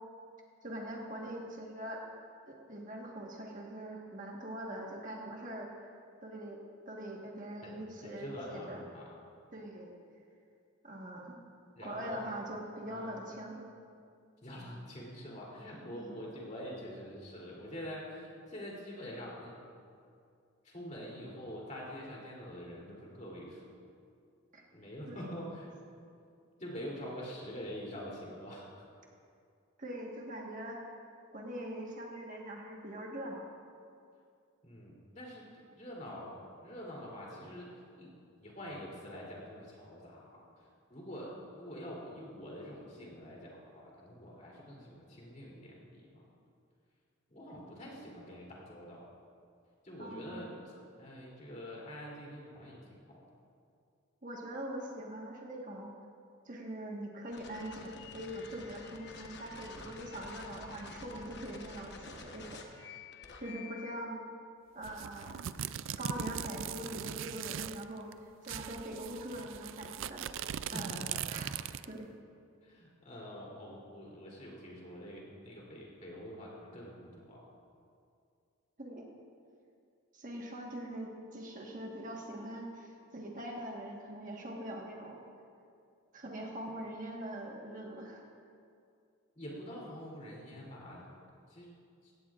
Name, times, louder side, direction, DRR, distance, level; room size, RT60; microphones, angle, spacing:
voice 1, 0.6-2.0 2.5-5.9 6.2-8.8 9.5-9.9 10.8-11.4 11.8-13.6 16.0-16.2 24.5-24.6 25.1-25.3 29.8-30.9 31.3-33.4 50.0-50.6 54.2-55.9 56.4-62.5 62.7-63.0 63.4-64.2 64.7-65.3 65.9-70.3 70.7-70.9 71.3-71.5 71.8-72.1 78.8-79.1 80.1-85.2 86.1-88.2, right 1 dB, 40° right, -1 dB, 1.4 m, -43 dB
voice 2, 8.0-9.1 11.8-12.3 12.9-13.2 14.4-19.5 20.6-23.7 24.7-25.7 26.6-28.7 34.6-38.1 38.4-40.4 40.9-46.3 47.3-49.1 49.8-53.2 59.8-60.0 70.7-71.2 72.6-77.5 89.3-91.1 91.5-91.7 92.0-92.1, equal, 35° left, -4 dB, 3.1 m, -45 dB
sound 1, 57.3-63.9, left 4 dB, 55° left, 1.1 m, -49 dB
sound 2, 64.8-67.8 68.1-68.2 68.4-72.0, right 9 dB, 65° right, 0.3 m, -40 dB
16.5 x 16.0 x 2.5 m, 2.4 s
head